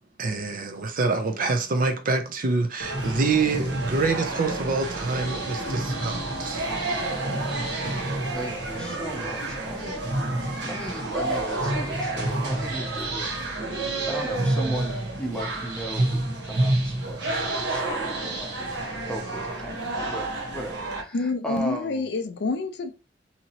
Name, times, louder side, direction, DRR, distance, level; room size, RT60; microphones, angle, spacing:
voice 1, 0.2-6.7, right 3 dB, 50° right, 0.5 m, -26 dB
sound 1, 2.8-21.0, right 2 dB, 65° right, 1.0 m, -29 dB
voice 2, 8.3-10.0 10.7-13.3 14.1-18.6 19.1-22.1, right 1 dB, 5° left, 0.7 m, -37 dB
voice 3, 21.1-22.9, left 3 dB, 65° left, 0.4 m, -27 dB
2.9 x 2.7 x 2.7 m
head